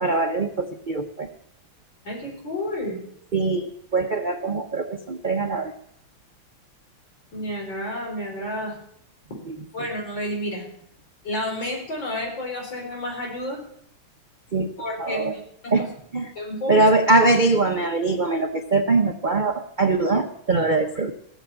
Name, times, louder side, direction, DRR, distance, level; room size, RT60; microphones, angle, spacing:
voice 1, 0.0-1.3 3.3-5.7 9.5-9.6 14.5-15.3 15.7-15.8 16.1-16.3 16.7-21.1, right 3 dB, 90° right, 5 dB, 0.4 m, -22 dB
voice 2, 2.0-3.0 7.3-8.7 9.7-10.6 11.2-13.6 14.8-15.3 15.6-15.9 16.4-16.8, left 1 dB, 65° left, -1 dB, 5.6 m, -30 dB
17.0 x 7.3 x 8.8 m, 0.70 s
omnidirectional pair, 2.2 m